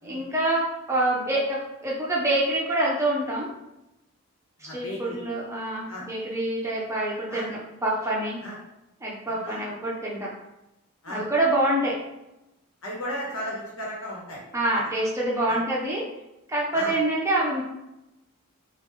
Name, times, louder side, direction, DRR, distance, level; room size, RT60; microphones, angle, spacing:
voice 1, 0.0-3.5 4.7-8.4 9.0-10.3 11.1-11.9 14.5-16.0 16.5-17.6, right 1 dB, 15° right, -5 dB, 0.6 m, -26 dB
voice 2, 4.6-5.2 5.9-6.0 7.3-7.5 8.4-8.6 9.2-9.7 11.0-11.2 12.8-14.4 15.5-15.6 16.7-16.9, equal, 80° left, -4 dB, 1.3 m, -35 dB
3.4 x 2.5 x 3.2 m, 0.92 s
head